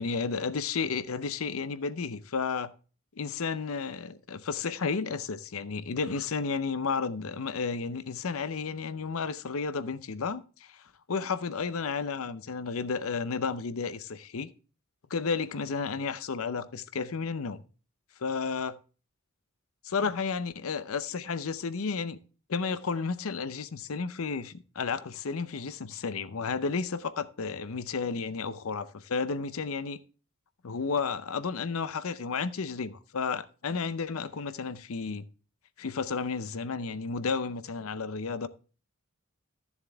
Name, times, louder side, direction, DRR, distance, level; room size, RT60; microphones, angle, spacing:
voice 1, 0.0-2.7 3.2-10.8 11.1-14.5 15.1-17.6 18.2-18.7 19.8-22.2 22.5-30.0 30.6-35.2 35.8-38.5, left 5 dB, 75° left, 0.6 m, -32 dB
13.0 x 7.1 x 3.4 m
head